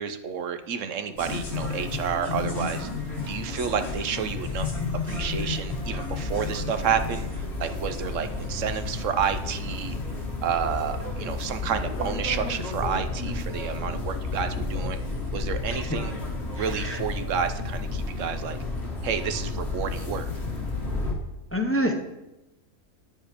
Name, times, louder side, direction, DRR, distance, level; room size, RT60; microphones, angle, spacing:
voice 1, 0.0-2.9 3.3-4.7 5.0-10.0 10.4-15.0 15.3-16.2 16.5-18.6 19.0-20.3, right 7 dB, 65° right, 10 dB, 1.0 m, -30 dB
sound 1, 1.2-21.1, left 3 dB, 45° left, 2.0 m, -31 dB
voice 2, 16.6-17.0 21.5-22.0, equal, 15° left, 4 dB, 0.6 m, -27 dB
9.5 x 7.5 x 5.0 m, 0.97 s
omnidirectional pair, 1.5 m